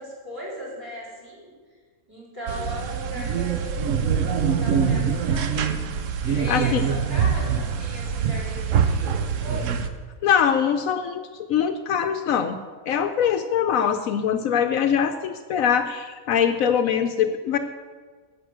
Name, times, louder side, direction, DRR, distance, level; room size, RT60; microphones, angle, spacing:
voice 1, 0.0-1.5 2.1-5.9 6.3-9.8, equal, 15° right, -5 dB, 4.3 m, -37 dB
sound 1, 2.5-9.9, right 7 dB, 65° right, 1.0 m, -24 dB
voice 2, 6.3-6.8 10.2-11.2 11.5-12.6 12.9-17.6, left 8 dB, 75° left, 8 dB, 1.0 m, -23 dB
11.0 x 7.5 x 6.5 m, 1.5 s
omnidirectional pair, 1.5 m